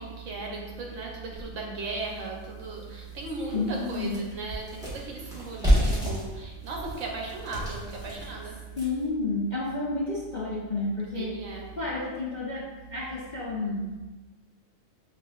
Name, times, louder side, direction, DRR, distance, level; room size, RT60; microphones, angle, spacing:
voice 1, 0.0-8.6 11.1-11.8, right 3 dB, 70° right, -1 dB, 1.1 m, -36 dB
sound 1, 2.0-2.1 2.6-2.7 3.1-9.1, equal, 5° right, 0.9 m, -29 dB
voice 2, 3.5-4.2 8.8-11.4 11.8-14.0, left 2 dB, 50° left, -7 dB, 0.5 m, -31 dB
6.0 x 2.5 x 2.3 m, 1.2 s
omnidirectional pair, 1.4 m